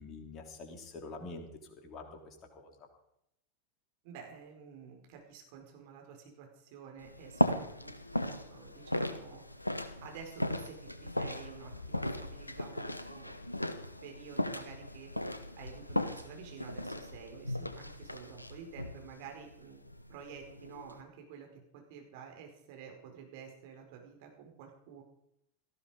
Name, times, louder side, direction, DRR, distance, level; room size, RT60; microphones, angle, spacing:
voice 1, 0.0-2.7, left 3 dB, 30° left, 3 dB, 3.4 m, -46 dB
voice 2, 4.0-9.7 10.0-13.6 14.0-25.0, right 7 dB, 50° right, 2 dB, 5.0 m, -51 dB
sound 1, 7.0-21.0, left 1 dB, 85° left, 1.1 m, -37 dB
18.0 x 14.0 x 5.1 m, 0.76 s
figure-of-eight pair, 90°, 0 cm